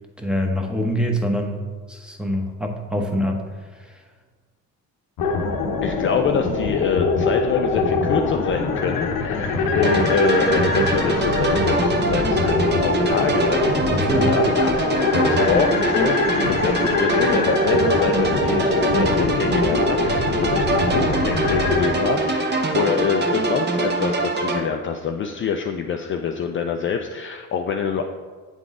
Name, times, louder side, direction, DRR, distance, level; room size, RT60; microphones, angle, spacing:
voice 1, 0.2-3.4 3.7-4.0 13.9-14.4, equal, 5° right, 2 dB, 0.9 m, -25 dB
sound 1, 5.2-21.9, left 4 dB, 75° left, 0.8 m, -23 dB
voice 2, 5.8-28.0, left 6 dB, 35° left, 4 dB, 0.4 m, -25 dB
sound 2, 9.8-24.6, right 2 dB, 30° right, 0.8 m, -23 dB
8.1 x 3.8 x 3.7 m, 1.5 s
supercardioid pair, 75°, 34 cm